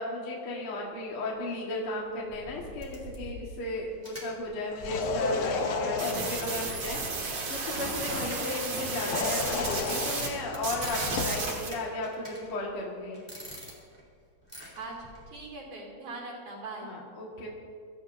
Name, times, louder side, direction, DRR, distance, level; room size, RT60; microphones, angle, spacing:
voice 1, 0.0-13.2 16.8-17.5, left 2 dB, 50° left, -3 dB, 2.5 m, -35 dB
sound 1, 1.9-8.9 9.3-11.1 11.7-12.8 13.1-14.0 14.4-15.3, equal, 5° left, 3.8 m, -46 dB
sound 2, 4.7-6.6 8.8-11.5, left 4 dB, 65° left, 1.9 m, -33 dB
sound 3, 6.0-10.3 10.5-11.7, right 3 dB, 55° right, 3.2 m, -33 dB
voice 2, 14.8-16.9, right 3 dB, 80° right, -2 dB, 4.7 m, -41 dB
24.0 x 14.5 x 2.7 m, 2.2 s
omnidirectional pair, 3.4 m